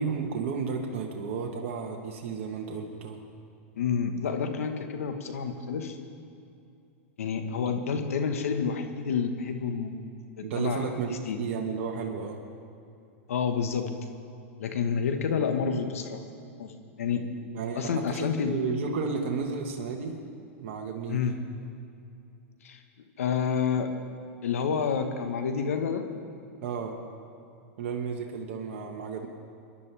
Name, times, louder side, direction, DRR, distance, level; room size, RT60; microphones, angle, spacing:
voice 1, 0.0-3.2 10.4-12.4 17.5-20.2 20.6-21.2 26.6-27.0 27.8-29.3, right 5 dB, 60° right, 1 dB, 1.4 m, -32 dB
voice 2, 3.8-6.0 7.2-10.0 10.4-11.4 13.3-13.9 14.6-16.2 16.6-17.3 17.7-18.5 21.1-21.4 22.6-22.8 23.2-23.9 24.4-26.1, left 6 dB, 80° left, 6 dB, 1.4 m, -29 dB
25.0 x 11.0 x 3.5 m, 2.6 s
hypercardioid pair, 115°, 7 cm